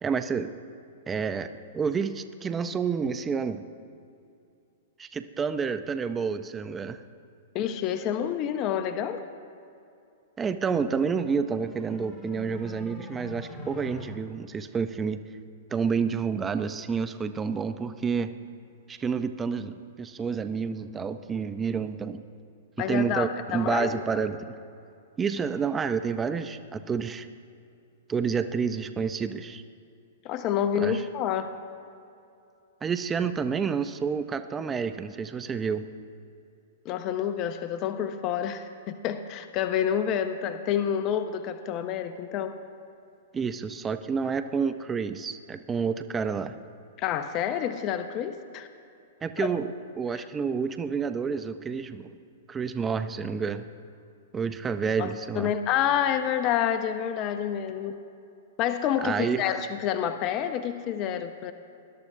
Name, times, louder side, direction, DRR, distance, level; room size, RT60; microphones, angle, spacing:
voice 1, 0.0-0.6 1.1-3.6 5.0-7.0 10.4-15.2 15.7-18.3 18.9-22.2 22.9-24.5 25.2-27.3 28.1-29.6 30.8-31.0 32.8-35.9 43.3-46.6 49.2-52.2 52.5-53.6 54.3-55.5 59.0-59.5, right 6 dB, 20° right, 11 dB, 0.6 m, -29 dB
voice 2, 7.5-9.2 22.8-24.2 30.2-31.5 36.8-42.6 47.0-48.7 49.4-49.5 50.1-50.2 55.0-55.1 55.3-57.9 58.6-61.5, left 9 dB, 40° left, 9 dB, 0.6 m, -28 dB
sound 1, 10.8-14.0, left 2 dB, 20° left, 2.3 m, -43 dB
20.0 x 11.5 x 2.7 m, 2.5 s
hypercardioid pair, 115°, 0 cm